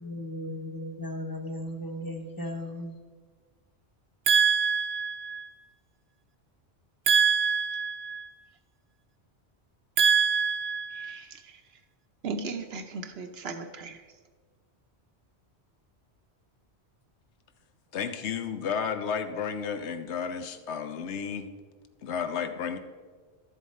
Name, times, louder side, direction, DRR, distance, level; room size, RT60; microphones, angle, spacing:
voice 1, 0.0-3.0, left 1 dB, 20° left, 5 dB, 0.8 m, -36 dB
voice 2, 4.3-5.6 7.1-8.4 10.0-11.6 12.2-14.0, right 6 dB, 70° right, 7 dB, 1.0 m, -27 dB
voice 3, 17.9-21.5 22.0-22.8, left 7 dB, 90° left, 9 dB, 1.0 m, -32 dB
12.0 x 7.1 x 4.2 m, 1.5 s
omnidirectional pair, 1.1 m